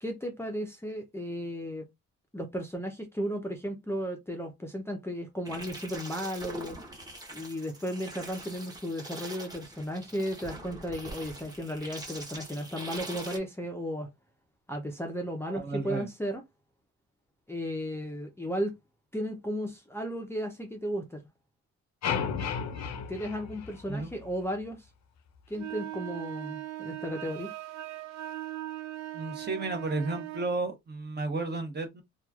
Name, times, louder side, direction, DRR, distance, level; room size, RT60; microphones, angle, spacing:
voice 1, 0.0-1.9 2.3-6.8 7.3-14.1 14.7-16.4 17.5-18.8 19.1-21.2 23.1-24.8 25.5-27.5, equal, 10° left, 0.6 m, -34 dB
sound 1, 5.4-13.4, right 1 dB, 15° right, 0.9 m, -43 dB
voice 2, 15.5-16.1 23.9-24.1 29.1-32.0, right 3 dB, 35° right, 0.9 m, -33 dB
sound 2, 22.0-24.3, left 7 dB, 65° left, 0.7 m, -33 dB
sound 3, 25.5-30.5, right 14 dB, 65° right, 0.6 m, -39 dB
3.0 x 2.4 x 2.3 m
cardioid pair, 90°, 30 cm